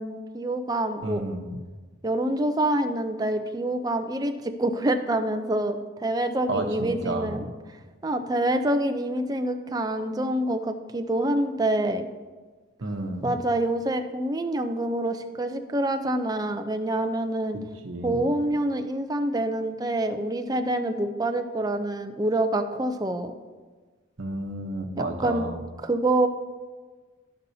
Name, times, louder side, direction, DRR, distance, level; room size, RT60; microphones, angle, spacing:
voice 1, 0.0-1.3 2.0-7.4 8.0-12.0 13.2-17.6 18.0-23.3 25.2-25.5 25.8-26.3, right 1 dB, 20° right, 7 dB, 0.4 m, -26 dB
voice 2, 1.0-1.6 6.5-7.4 12.8-13.3 17.8-18.2 24.2-25.6, right 2 dB, 80° right, 3 dB, 0.9 m, -31 dB
13.0 x 5.4 x 2.7 m, 1.4 s
head